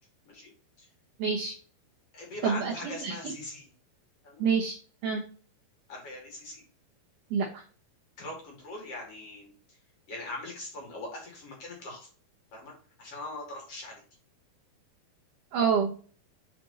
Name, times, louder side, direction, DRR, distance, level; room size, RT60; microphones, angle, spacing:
voice 1, 1.2-1.5 2.4-2.7 3.0-3.1 4.4-4.7 5.0-5.2 7.3-7.6 15.5-16.0, right 6 dB, 65° right, -2 dB, 2.4 m, -27 dB
voice 2, 2.1-3.7 4.2-4.4 5.9-6.6 8.2-9.8 10.1-12.1 12.5-14.0, left 2 dB, 40° left, -1 dB, 3.1 m, -41 dB
6.1 x 5.9 x 4.1 m, 0.41 s
omnidirectional pair, 4.6 m